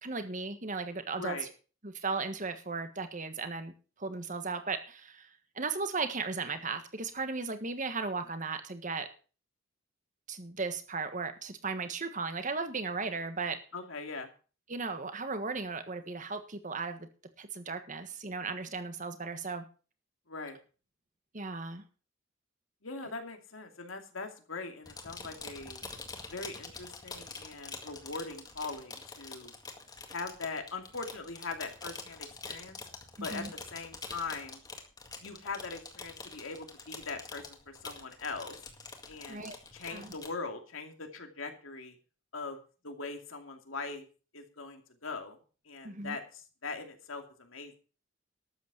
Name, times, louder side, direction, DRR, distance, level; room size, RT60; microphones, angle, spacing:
voice 1, 0.0-1.4 1.8-3.7 4.0-5.3 5.5-9.1 10.3-13.6 14.7-17.1 17.4-19.6 21.3-21.8 33.2-33.5 39.3-39.6 39.8-40.1 45.8-46.2, right 4 dB, 40° right, 9 dB, 1.5 m, -36 dB
voice 2, 13.7-14.3 20.3-20.6 22.8-25.9 26.3-29.5 30.1-32.8 33.2-33.4 33.7-34.6 35.2-38.6 39.1-42.0 42.3-42.6 42.8-44.0 44.3-45.4 45.7-47.8, left 4 dB, 85° left, 4 dB, 2.5 m, -41 dB
sound 1, 24.8-40.3, left 4 dB, 20° left, 1.9 m, -46 dB
12.5 x 8.4 x 6.0 m, 0.37 s
head